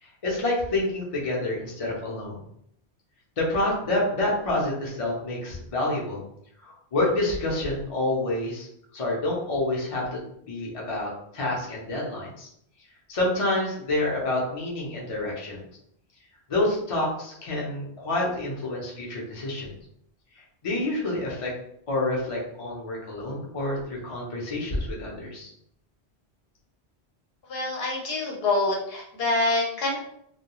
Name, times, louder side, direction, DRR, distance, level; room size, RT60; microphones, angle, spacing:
voice 1, 0.0-2.4 3.4-6.2 6.6-8.7 8.9-10.2 10.5-12.5 13.1-15.6 16.5-19.7 20.6-21.5 21.9-25.5, left 2 dB, 35° left, -4 dB, 0.6 m, -28 dB
voice 2, 27.5-30.0, left 2 dB, 65° left, -3 dB, 0.9 m, -26 dB
2.3 x 2.2 x 2.9 m, 0.72 s
omnidirectional pair, 1.1 m